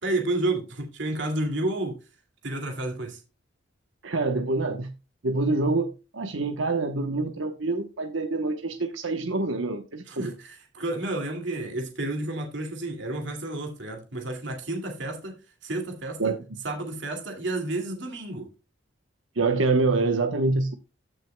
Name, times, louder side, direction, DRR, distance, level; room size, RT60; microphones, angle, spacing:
voice 1, 0.0-2.0 2.4-3.2 10.1-15.4 15.6-16.3 16.6-18.5, right 2 dB, 70° right, 2.3 m, -31 dB
voice 2, 4.0-4.9 5.2-10.3 16.2-16.4 19.4-20.8, right 3 dB, 85° right, 1.0 m, -26 dB
15.0 x 6.3 x 2.2 m
head